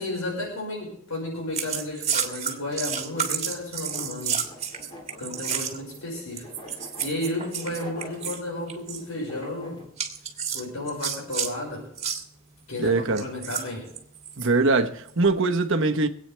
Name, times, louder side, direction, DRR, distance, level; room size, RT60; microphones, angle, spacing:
voice 1, 0.0-4.4 5.2-6.4 6.7-9.8 10.5-11.8 12.7-13.8, left 1 dB, 80° left, 5.7 m, -33 dB
sound 1, 1.5-6.0 6.4-8.4 8.7-9.0 10.0-11.5 11.9-12.2 13.2-14.5 15.1-15.3, right 7 dB, 30° right, 1.8 m, -30 dB
sound 2, 3.0-9.8, left 1 dB, 25° left, 3.5 m, -45 dB
voice 2, 12.8-13.2 14.4-16.1, right 3 dB, 60° right, 1.1 m, -22 dB
25.0 x 9.0 x 3.4 m
head